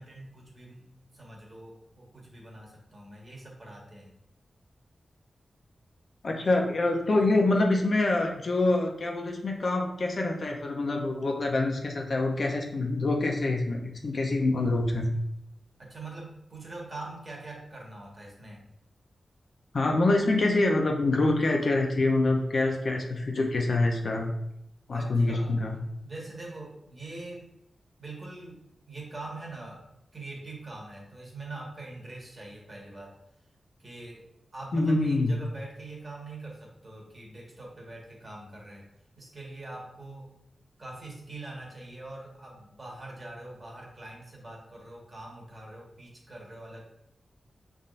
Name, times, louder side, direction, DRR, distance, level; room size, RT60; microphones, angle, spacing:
voice 1, 0.0-4.2 15.8-18.6 24.9-25.6 26.0-27.5 28.0-29.9 30.1-33.2 33.8-34.2 34.5-38.9 39.2-40.3 40.8-46.8, right 2 dB, 40° right, -2 dB, 1.3 m, -43 dB
voice 2, 6.2-15.1 19.7-24.3 24.9-25.8 34.7-35.3, left 2 dB, 55° left, 1 dB, 0.6 m, -25 dB
5.5 x 3.5 x 2.5 m, 0.80 s
wide cardioid pair, 90°, 0 cm